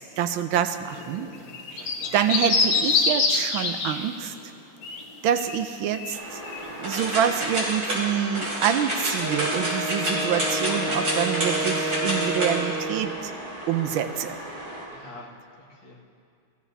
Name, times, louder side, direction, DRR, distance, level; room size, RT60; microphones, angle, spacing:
voice 1, 0.0-1.3 1.7-4.3 5.2-6.4 6.8-13.3 13.7-14.4, right 9 dB, 85° right, 9 dB, 1.4 m, -26 dB
sound 1, 0.9-4.1 4.4-4.5 4.8-5.0 5.4-5.6 5.9-6.2 6.4-6.6, left 4 dB, 90° left, 1.9 m, -25 dB
voice 2, 1.3-2.1 14.9-16.0, left 2 dB, 70° left, -4 dB, 2.6 m, -47 dB
sound 2, 6.1-14.8, right 1 dB, 50° right, 4.6 m, -29 dB
Wind instrument woodwind instrument, 9.2-13.2, right 2 dB, 10° right, 1.4 m, -30 dB
21.0 x 15.0 x 2.7 m, 2.3 s
omnidirectional pair, 2.2 m